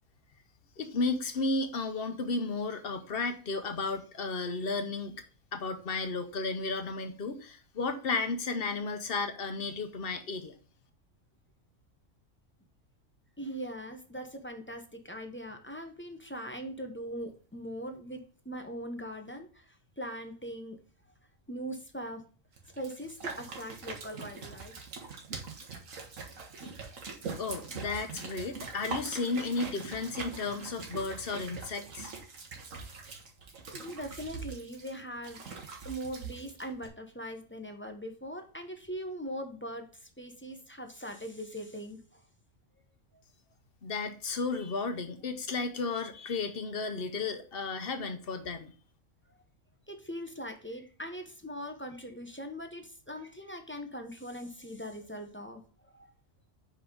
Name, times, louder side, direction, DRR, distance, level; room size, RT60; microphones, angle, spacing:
voice 1, 0.8-5.2 5.5-10.5 27.4-32.1 43.8-48.7, left 3 dB, 50° left, 8 dB, 1.0 m, -33 dB
voice 2, 13.4-20.8 21.5-22.2 22.8-24.8 33.7-35.4 35.8-42.2 49.3-49.4 49.9-56.1, equal, 10° left, 5 dB, 0.7 m, -41 dB
sound 1, 22.6-36.9, right 4 dB, 90° right, 1.7 m, -43 dB
5.7 x 5.3 x 3.8 m, 0.40 s
omnidirectional pair, 1.3 m